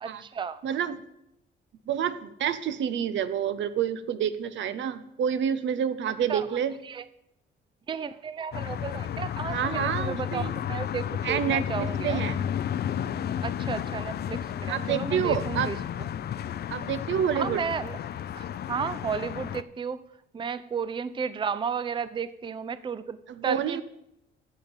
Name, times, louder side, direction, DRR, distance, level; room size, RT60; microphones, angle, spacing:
voice 1, 0.0-0.6 6.3-6.5 6.8-7.0 7.9-12.2 13.4-15.8 17.3-18.0 18.3-20.0 20.3-23.2 23.4-23.8, right 6 dB, 25° right, 15 dB, 0.5 m, -33 dB
voice 2, 0.6-1.0 1.9-6.8 9.5-10.5 11.2-12.4 14.7-15.7 16.7-17.6 23.3-23.8, right 8 dB, 70° right, 13 dB, 0.7 m, -28 dB
sound 1, 8.5-19.6, left 9 dB, 55° left, 0.5 m, -32 dB
12.0 x 7.4 x 5.2 m, 0.83 s
cardioid pair, 90°, 20 cm